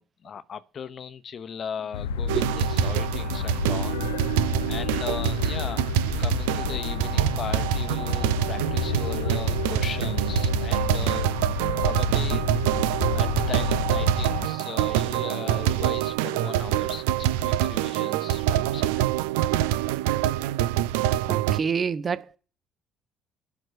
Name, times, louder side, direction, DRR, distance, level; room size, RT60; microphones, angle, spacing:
voice 1, 0.0-4.0 4.7-11.4 11.8-12.4 13.1-19.1, left 7 dB, 45° left, 0.9 m, -37 dB
sound 1, 1.9-14.5, left 7 dB, 75° left, 0.4 m, -30 dB
sound 2, 2.3-21.6, right 13 dB, 70° right, 0.4 m, -25 dB
voice 2, 21.3-22.4, right 6 dB, 40° right, 0.8 m, -27 dB
11.5 x 4.5 x 6.6 m
figure-of-eight pair, 50°, 0 cm